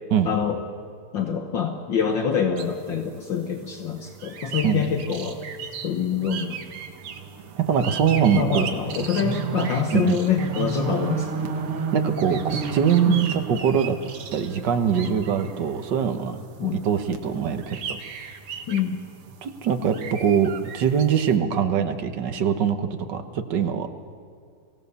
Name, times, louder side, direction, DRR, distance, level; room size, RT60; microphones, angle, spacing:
voice 1, 0.2-0.6 1.1-5.4 5.8-6.6 8.3-11.3 13.0-13.2 16.6-16.8 18.7-19.0, left 7 dB, 60° left, 4 dB, 1.7 m, -25 dB
sound 1, 2.6-21.3, right 5 dB, 80° right, 2.2 m, -34 dB
voice 2, 7.6-8.7 9.2-9.5 9.9-10.2 11.9-14.0 14.3-18.0 19.4-23.9, right 8 dB, 60° right, 8 dB, 1.6 m, -23 dB
23.0 x 17.0 x 6.9 m, 2.4 s
omnidirectional pair, 2.4 m